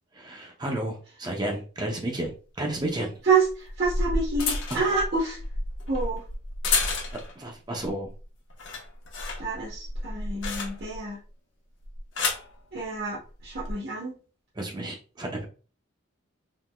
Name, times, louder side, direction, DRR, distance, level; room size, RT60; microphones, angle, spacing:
voice 1, 0.1-3.1 4.7-5.0 7.4-8.1 14.6-15.5, right 1 dB, 20° right, 1 dB, 0.6 m, -32 dB
sound 1, 2.2-2.3 3.5-7.4 7.9-8.2 8.5-11.1 11.8-12.5 13.4-13.7, left 3 dB, 70° left, 1.0 m, -30 dB
voice 2, 3.2-5.4 5.9-6.2 9.4-11.2 12.7-14.1, right 4 dB, 50° right, -6 dB, 1.1 m, -27 dB
3.8 x 3.4 x 2.2 m, 0.37 s
head